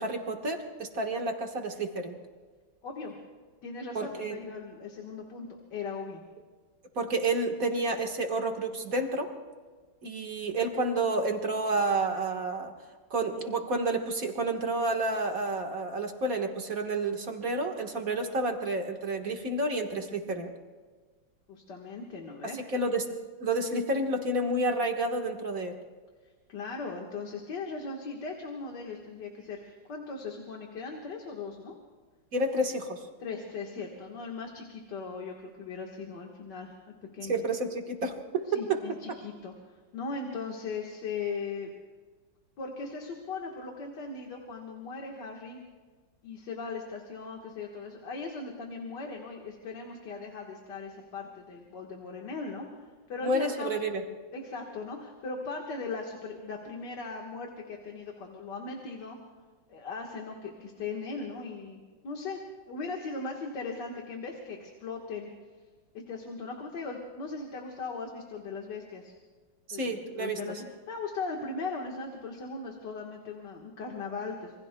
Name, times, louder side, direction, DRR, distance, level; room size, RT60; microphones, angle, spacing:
voice 1, 0.0-2.2 4.0-4.4 7.0-9.3 10.0-12.7 13.1-20.5 22.5-23.1 23.4-25.8 32.3-33.0 37.2-38.8 53.2-54.0 69.7-70.4, right 2 dB, 50° right, 3 dB, 1.8 m, -30 dB
voice 2, 2.8-3.2 3.6-6.2 21.5-22.6 26.5-31.8 33.2-36.7 37.1-37.4 38.5-39.5 39.9-41.7 42.6-45.6 46.2-53.8 54.3-59.2 59.7-62.4 62.7-65.3 66.1-69.1 69.7-74.5, left 4 dB, 65° left, 1 dB, 2.1 m, -38 dB
27.5 x 23.5 x 2.2 m, 1.4 s
omnidirectional pair, 2.0 m